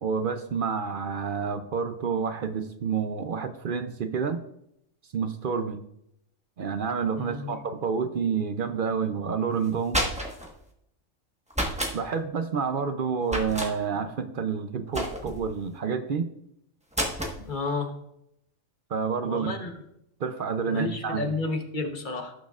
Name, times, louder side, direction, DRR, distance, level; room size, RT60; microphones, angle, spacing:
voice 1, 0.0-4.4 5.1-5.8 6.6-10.1 11.9-16.3 18.9-19.5 20.2-21.3, right 6 dB, 55° right, 9 dB, 0.6 m, -29 dB
voice 2, 7.2-7.6 17.5-17.9 19.2-19.7 20.7-22.3, left 3 dB, 40° left, 4 dB, 1.1 m, -31 dB
sound 1, 9.6-10.5 11.5-12.0 13.3-13.7 14.9-15.5 16.9-17.4, equal, 5° right, 1.1 m, -29 dB
17.5 x 6.4 x 2.4 m, 0.79 s
omnidirectional pair, 1.3 m